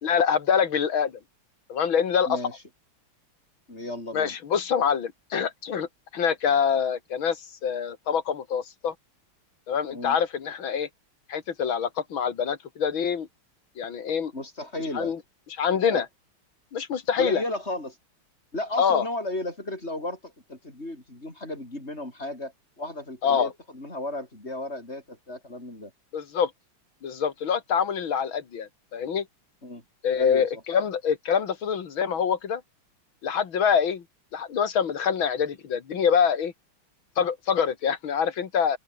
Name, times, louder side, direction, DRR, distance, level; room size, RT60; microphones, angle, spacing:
voice 1, 0.0-1.1 1.7-2.4 4.1-8.9 9.7-10.9 11.3-13.3 13.8-14.3 14.9-15.2 15.5-16.1 16.7-17.4 18.8-19.1 23.2-23.5 26.1-26.5 27.0-29.3 30.0-32.6 33.2-34.0 34.3-36.5 37.2-38.8, left 7 dB, 65° left, 2.6 m, -25 dB
voice 2, 3.7-4.3 9.9-10.2 14.1-15.1 15.7-16.0 17.2-18.0 18.5-25.9 29.6-29.8 30.1-30.5, left 1 dB, 30° left, 7.8 m, -34 dB
open air
omnidirectional pair, 2.4 m